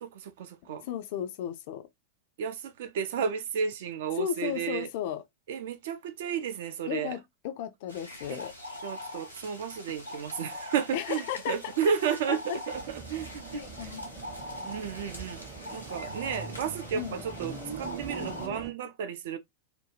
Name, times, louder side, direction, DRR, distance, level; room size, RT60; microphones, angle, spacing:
voice 1, 0.0-0.8 2.4-4.9 5.5-7.2 8.3-8.4 8.8-13.9 14.6-19.4, right 7 dB, 55° right, 0.4 m, -33 dB
voice 2, 0.8-1.9 4.2-5.2 6.9-8.5 10.9-11.9 12.5-12.6 13.5-14.4 16.9-17.2, left 10 dB, 50° left, 0.4 m, -35 dB
sound 1, 7.9-18.5, left 1 dB, 90° left, 0.8 m, -43 dB
sound 2, 12.7-18.7, right 5 dB, 25° right, 0.7 m, -42 dB
2.5 x 2.3 x 3.0 m
figure-of-eight pair, 90°, 0 cm